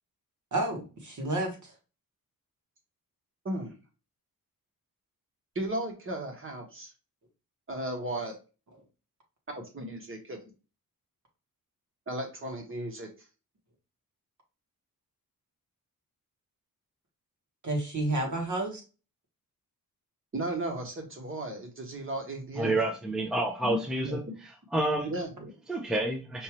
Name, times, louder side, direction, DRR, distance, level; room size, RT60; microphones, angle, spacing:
voice 1, 0.5-1.7 17.6-18.8, right 2 dB, 55° right, 1.6 m, -30 dB
voice 2, 3.4-3.8 5.5-6.9 7.7-8.3 9.5-10.5 12.1-13.1 20.3-22.8 23.6-23.8 24.0-24.3 25.0-25.5, right 1 dB, 35° right, 1.3 m, -35 dB
voice 3, 22.6-24.2 24.7-25.1 25.7-26.4, right 2 dB, ahead, 0.6 m, -29 dB
5.4 x 2.7 x 3.0 m
wide cardioid pair, 140°, 36 cm